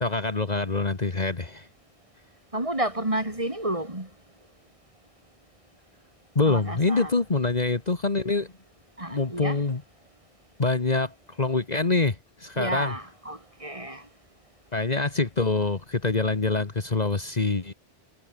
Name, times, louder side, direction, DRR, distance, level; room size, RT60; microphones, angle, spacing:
voice 1, 0.0-1.6 6.3-8.5 9.1-9.8 10.6-12.9 14.7-17.7, left 3 dB, 40° left, 1.6 m, -25 dB
voice 2, 2.5-4.1 6.4-7.1 9.0-9.6 12.6-14.0, right 1 dB, 30° right, 3.8 m, -30 dB
omnidirectional pair, 1.1 m